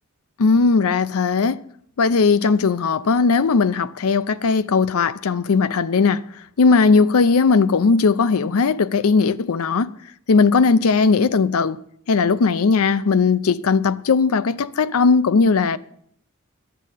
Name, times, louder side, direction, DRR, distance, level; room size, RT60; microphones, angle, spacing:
voice 1, 0.4-1.6 2.0-6.2 6.6-9.9 10.3-11.8 12.1-15.8, left 4 dB, 80° left, 0.5 m, -18 dB
11.0 x 7.5 x 8.2 m
head